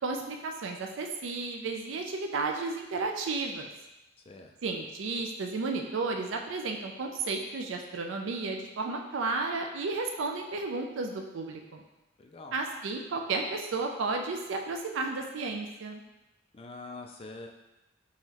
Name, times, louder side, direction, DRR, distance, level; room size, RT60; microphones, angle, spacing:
voice 1, 0.0-3.7 4.6-11.8 12.5-16.0, right 3 dB, 70° right, 3 dB, 0.4 m, -33 dB
voice 2, 12.2-12.6 16.5-17.5, left 3 dB, 30° left, 2 dB, 0.4 m, -44 dB
3.8 x 3.1 x 2.9 m, 0.96 s
head